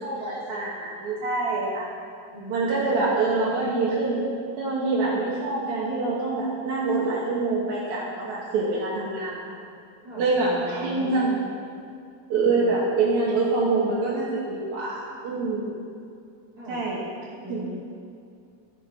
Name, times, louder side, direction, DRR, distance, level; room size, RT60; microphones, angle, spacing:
voice 1, 0.0-1.9 2.5-4.3 4.6-9.5 10.2-11.3 12.3-15.7 16.7-17.1 17.5-17.6, right 3 dB, 65° right, -6 dB, 2.4 m, -25 dB
voice 2, 2.3-3.2 10.0-11.5 12.6-12.8 16.6-16.8 17.4-17.8, equal, 35° right, -7 dB, 2.1 m, -39 dB
16.5 x 6.1 x 3.5 m, 2.4 s
omnidirectional pair, 4.0 m